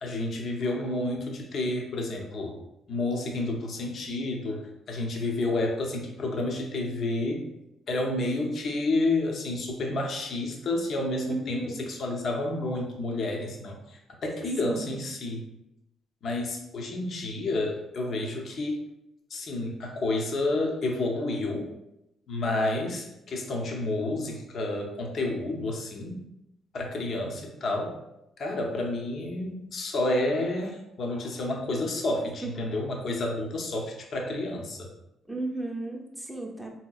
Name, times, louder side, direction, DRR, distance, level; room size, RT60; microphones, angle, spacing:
voice 1, 0.0-2.6 2.9-7.5 7.9-15.5 16.2-18.8 19.3-21.7 22.3-26.2 26.7-27.9 28.4-34.9, left 2 dB, 60° left, 1 dB, 0.7 m, -30 dB
voice 2, 11.3-11.8 14.6-14.9 32.4-32.6 35.3-36.7, right 2 dB, 10° right, 0 dB, 0.6 m, -34 dB
3.7 x 2.8 x 2.3 m, 0.86 s
cardioid pair, 90°, 0 cm